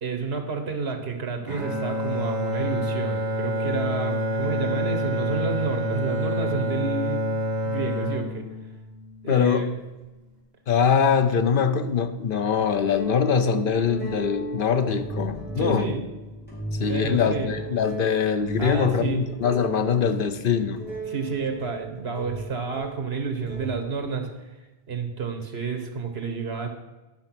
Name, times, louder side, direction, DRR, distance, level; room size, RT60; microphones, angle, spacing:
voice 1, 0.0-7.2 7.6-8.5 9.2-9.7 15.6-16.0 16.9-17.5 18.6-19.2 21.1-24.5 24.9-26.7, right 5 dB, 75° right, 5 dB, 1.5 m, -30 dB
Bowed string instrument, 1.5-9.7, equal, 40° right, 1.9 m, -28 dB
voice 2, 9.3-9.7 10.7-15.9 16.8-20.8, left 6 dB, 60° left, 10 dB, 0.8 m, -23 dB
sound 1, 10.0-10.1 11.8-12.0 12.5-24.1, right 2 dB, 10° left, 3.3 m, -36 dB
10.5 x 6.0 x 5.9 m, 1.1 s
omnidirectional pair, 1.1 m